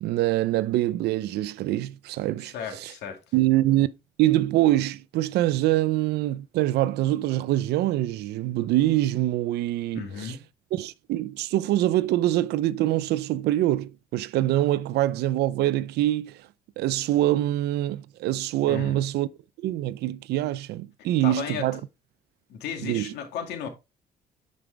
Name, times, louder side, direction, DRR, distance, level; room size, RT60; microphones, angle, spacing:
voice 1, 0.0-2.9 3.3-3.9 4.2-10.4 10.7-16.4 16.8-19.3 19.6-21.8 22.8-23.1, right 14 dB, 80° right, 0.6 m, -24 dB
voice 2, 2.4-3.2 9.9-10.4 18.6-19.0 21.2-21.8 22.5-23.7, left 7 dB, 80° left, 2.2 m, -34 dB
9.5 x 5.3 x 3.3 m
cardioid pair, 110°, 17 cm